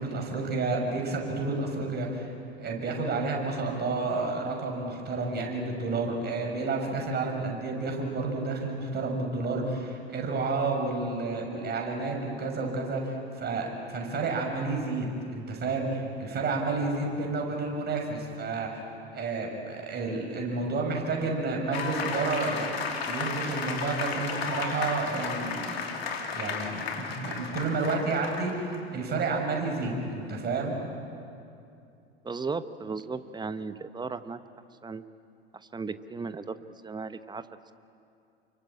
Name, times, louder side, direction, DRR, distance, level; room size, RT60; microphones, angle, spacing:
voice 1, 0.0-2.3 2.6-18.8 19.1-25.9 26.3-30.8, right 3 dB, 30° right, 1 dB, 6.8 m, -30 dB
sound 1, 21.7-28.8, left 5 dB, 75° left, 3.0 m, -33 dB
voice 2, 32.2-34.4 34.8-35.0 35.5-37.5, right 4 dB, 15° right, 12 dB, 1.1 m, -36 dB
28.5 x 24.0 x 8.7 m, 2.6 s
figure-of-eight pair, 80°, 31 cm